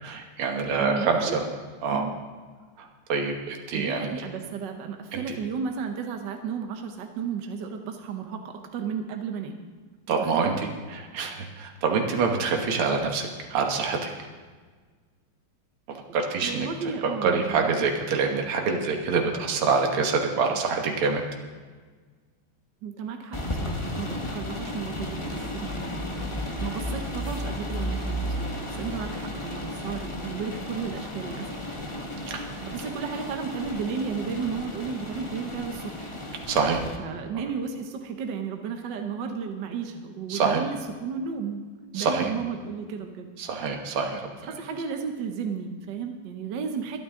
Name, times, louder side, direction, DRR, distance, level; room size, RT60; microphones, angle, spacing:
voice 1, 0.0-1.4 1.8-2.0 2.8-4.1 5.1-5.2 10.1-14.1 16.1-16.7 17.2-21.2 32.3-32.4 36.5-36.8 40.3-40.6 41.9-42.3 43.4-44.5, right 5 dB, 80° right, 2 dB, 2.1 m, -26 dB
voice 2, 0.8-1.4 1.9-2.2 3.7-9.6 10.2-10.6 16.4-17.7 22.8-26.2 26.6-31.5 32.6-36.1 37.0-41.6 41.9-43.3 44.4-47.0, right 6 dB, 60° right, 4 dB, 1.4 m, -33 dB
sound 1, 23.3-37.0, left 1 dB, 20° left, 0.9 m, -34 dB
23.5 x 9.3 x 3.7 m, 1.5 s
omnidirectional pair, 2.4 m